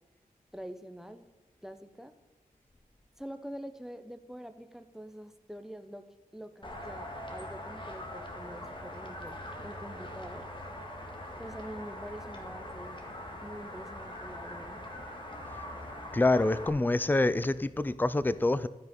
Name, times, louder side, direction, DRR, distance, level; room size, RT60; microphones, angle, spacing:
voice 1, 0.5-1.3 1.6-2.1 3.2-6.0 6.3-10.5 11.4-13.0 13.4-14.8, equal, 5° right, 8 dB, 1.0 m, -45 dB
sound 1, 6.6-16.7, left 1 dB, 30° left, 2.0 m, -42 dB
voice 2, 16.1-18.7, left 2 dB, 10° left, 15 dB, 0.5 m, -26 dB
13.0 x 5.2 x 5.4 m, 1.2 s
cardioid pair, 45°, 15 cm